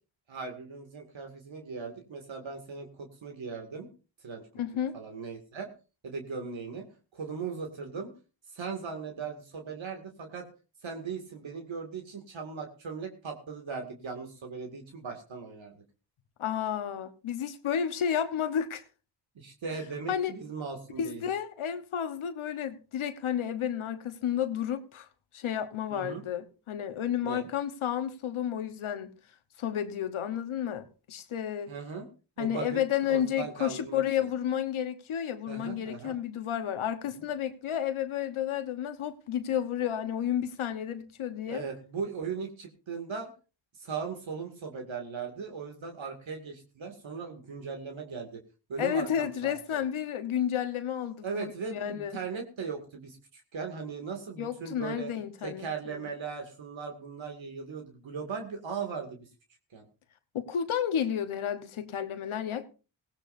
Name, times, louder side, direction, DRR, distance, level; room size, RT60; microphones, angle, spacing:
voice 1, 0.3-3.9 4.2-4.4 4.7-5.7 6.0-6.8 7.1-8.1 8.5-10.5 10.8-15.8 19.4-21.3 25.9-26.2 27.2-27.5 31.7-32.1 32.4-34.0 35.5-36.2 41.5-43.3 43.7-48.4 48.7-49.9 51.2-55.1 55.4-59.3 59.7-59.9, right 5 dB, 70° right, 3 dB, 2.4 m, -38 dB
voice 2, 4.6-4.9 16.4-18.8 20.1-20.3 21.0-25.1 25.3-29.1 29.6-31.7 32.4-41.6 48.8-52.2 54.4-55.7 55.9-56.0 60.3-62.7, left 9 dB, 85° left, 9 dB, 1.2 m, -31 dB
18.0 x 16.5 x 2.7 m, 0.33 s
cardioid pair, 50°, 48 cm